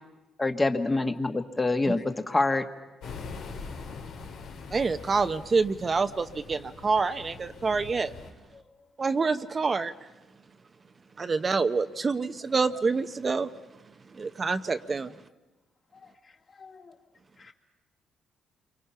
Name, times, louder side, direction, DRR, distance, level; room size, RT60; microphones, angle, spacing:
voice 1, 0.4-2.6, left 2 dB, 20° left, 7 dB, 1.4 m, -26 dB
sound 1, 3.0-8.3, left 4 dB, 75° left, 2.3 m, -43 dB
voice 2, 4.7-8.1 9.0-9.9 11.2-13.5 14.1-15.1, right 4 dB, 35° right, 9 dB, 0.7 m, -27 dB
voice 3, 8.5-8.9 15.9-17.0 17.4-17.5, left 5 dB, 40° left, 2 dB, 2.4 m, -53 dB
28.5 x 24.0 x 5.7 m, 1.1 s
cardioid pair, 90°, 0 cm